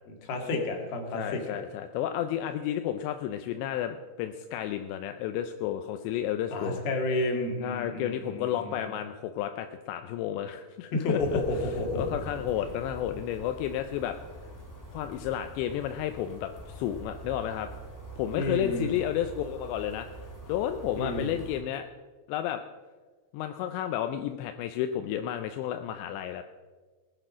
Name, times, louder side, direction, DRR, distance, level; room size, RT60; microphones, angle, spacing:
voice 1, 0.3-1.6 6.5-8.9 10.9-12.0 18.3-19.0 21.0-21.4, left 2 dB, 60° left, 3 dB, 3.7 m, -31 dB
voice 2, 1.1-6.8 7.6-11.4 12.0-14.2 14.9-17.7 18.2-20.1 20.5-21.9 22.3-22.6 23.3-26.4, left 11 dB, 80° left, 7 dB, 2.7 m, -32 dB
sound 1, 11.2-21.6, right 1 dB, 15° left, 0.6 m, -43 dB
19.5 x 9.0 x 6.1 m, 1.3 s
omnidirectional pair, 5.5 m